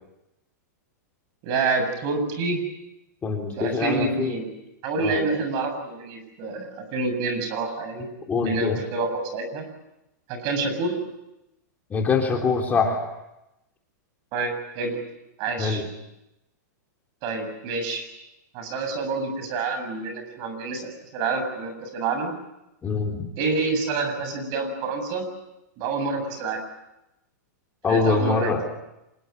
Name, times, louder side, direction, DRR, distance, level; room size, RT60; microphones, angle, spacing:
voice 1, 1.4-2.6 3.6-4.5 4.8-8.1 8.4-9.7 10.3-11.0 14.3-15.0 15.4-15.9 17.2-18.1 18.5-22.3 23.4-25.3 25.8-26.6 27.9-28.6, right 3 dB, 40° right, 7 dB, 7.6 m, -27 dB
voice 2, 3.2-4.3 5.0-5.2 8.3-8.8 11.9-13.1 15.6-15.8 22.8-23.3 27.8-28.6, left 4 dB, 15° left, 2 dB, 3.5 m, -24 dB
26.0 x 21.5 x 9.6 m, 0.92 s
hypercardioid pair, 145°, 10 cm